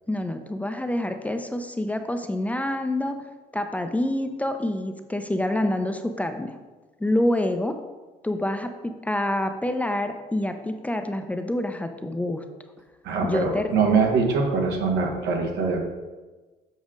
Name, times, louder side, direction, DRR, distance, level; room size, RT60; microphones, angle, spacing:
voice 1, 0.1-3.2 3.5-6.5 7.0-7.7 8.2-12.4 13.2-13.7, left 1 dB, 10° left, 6 dB, 0.5 m, -27 dB
voice 2, 13.0-15.8, right 4 dB, 85° right, 1 dB, 1.3 m, -23 dB
7.3 x 4.9 x 3.8 m, 1.3 s
cardioid pair, 110°, 17 cm